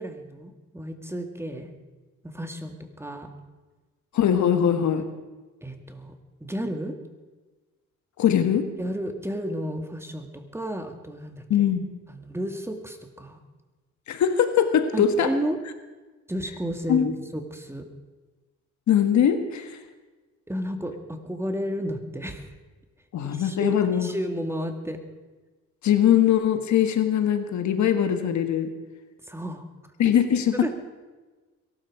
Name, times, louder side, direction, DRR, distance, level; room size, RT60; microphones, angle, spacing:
voice 1, 0.0-1.7 2.2-3.3 5.6-6.2 6.4-7.0 8.8-11.4 12.1-13.4 14.9-15.6 16.3-17.9 20.5-22.5 23.2-25.0 29.3-29.6 30.5-30.7, equal, 10° right, 6 dB, 2.1 m, -32 dB
voice 2, 4.1-5.1 8.2-8.7 11.5-11.8 14.1-15.3 16.9-17.1 18.9-19.8 23.1-24.1 25.8-28.7 30.0-30.7, left 9 dB, 70° left, 8 dB, 1.6 m, -21 dB
22.0 x 13.0 x 4.9 m, 1.2 s
cardioid pair, 90°, 30 cm